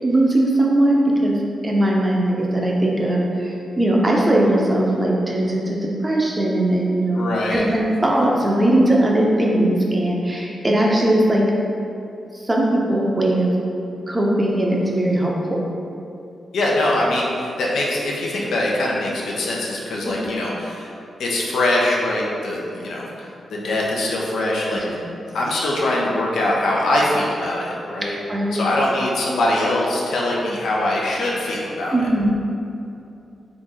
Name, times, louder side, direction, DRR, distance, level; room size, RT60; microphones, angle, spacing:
voice 1, 0.0-11.5 12.3-13.5 14.1-15.6 20.2-20.3 24.9-25.0 28.0-28.6 31.9-32.4, right 1 dB, 15° right, -2 dB, 0.6 m, -19 dB
voice 2, 7.1-7.6 16.5-20.9 21.2-25.0 25.3-28.2 28.5-32.0, left 1 dB, 90° left, -4 dB, 0.7 m, -22 dB
3.9 x 3.1 x 3.8 m, 2.6 s
wide cardioid pair, 135°, 0 cm